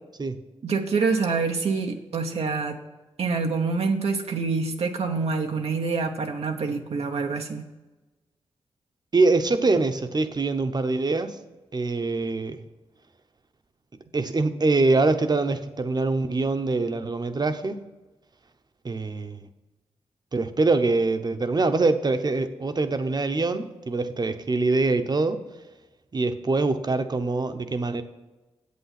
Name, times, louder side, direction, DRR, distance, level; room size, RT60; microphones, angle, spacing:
voice 1, 0.6-2.8 3.2-7.7, right 4 dB, 75° right, 3 dB, 0.9 m, -26 dB
voice 2, 9.1-11.4 11.7-12.6 14.1-17.8 18.8-19.5 20.3-25.4 26.1-28.0, right 3 dB, 40° right, 9 dB, 0.9 m, -24 dB
8.4 x 7.8 x 5.9 m, 1.1 s
cardioid pair, 55°, 11 cm